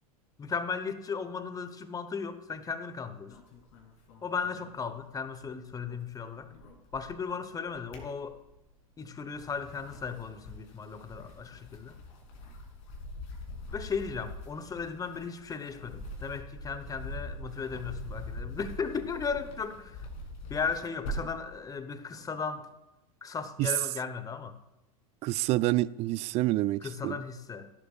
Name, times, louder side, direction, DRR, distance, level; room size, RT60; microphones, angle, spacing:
voice 1, 0.4-3.4 4.2-6.5 6.9-8.4 9.0-12.0 13.7-20.1 20.5-22.7 23.2-24.6 26.8-27.7, left 5 dB, 20° left, 1.0 m, -36 dB
sound 1, 3.3-5.4 5.7-7.3 7.7-8.7 9.2-21.5, equal, 55° left, 3.1 m, -43 dB
voice 2, 25.2-27.2, right 17 dB, 35° right, 0.4 m, -28 dB
16.5 x 11.5 x 2.4 m
figure-of-eight pair, 90°, 19 cm